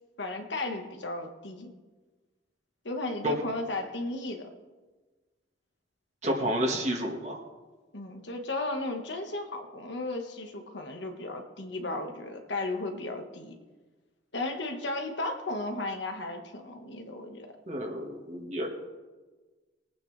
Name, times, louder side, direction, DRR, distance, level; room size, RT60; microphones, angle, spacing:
voice 1, 0.2-1.7 2.8-4.5 7.9-13.5 14.3-17.5, left 2 dB, 70° left, 4 dB, 1.6 m, -35 dB
voice 2, 6.2-7.4 17.7-18.7, equal, 35° right, 0 dB, 1.7 m, -30 dB
21.5 x 8.9 x 3.4 m, 1.3 s
head